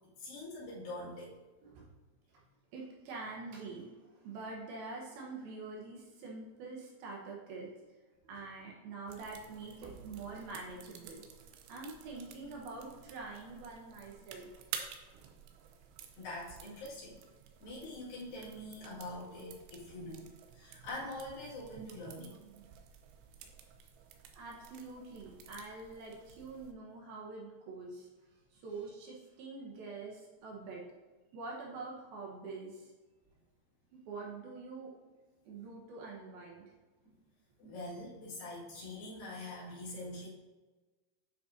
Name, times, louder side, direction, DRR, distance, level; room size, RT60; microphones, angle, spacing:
voice 1, 0.2-1.3 16.2-17.2 17.6-22.4 30.0-30.1 37.6-40.3, left 1 dB, 65° left, -7 dB, 3.5 m, -44 dB
voice 2, 2.7-7.7 8.2-11.2 11.7-14.5 22.4-22.6 24.3-28.1 28.5-30.8 31.3-32.9 33.9-34.9 35.5-36.6, right 3 dB, 70° right, -2 dB, 2.7 m, -45 dB
sound 1, 9.1-26.7, right 8 dB, 90° right, 2.7 m, -52 dB
9.3 x 5.4 x 2.6 m, 1.2 s
omnidirectional pair, 4.8 m